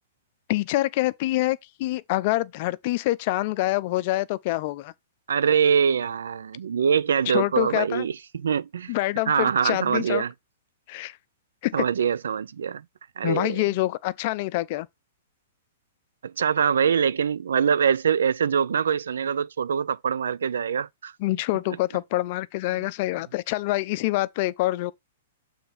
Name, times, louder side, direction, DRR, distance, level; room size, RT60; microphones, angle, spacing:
voice 1, 0.5-4.9 7.3-8.1 8.9-10.2 10.9-11.2 11.6-11.8 13.2-14.9 21.2-24.9, left 17 dB, 50° left, 0.5 m, -26 dB
voice 2, 5.3-8.9 9.3-10.3 11.7-12.8 13.2-13.6 16.2-21.1, right 7 dB, 75° right, 0.4 m, -24 dB
6.9 x 3.5 x 5.4 m
hypercardioid pair, 120°, 0 cm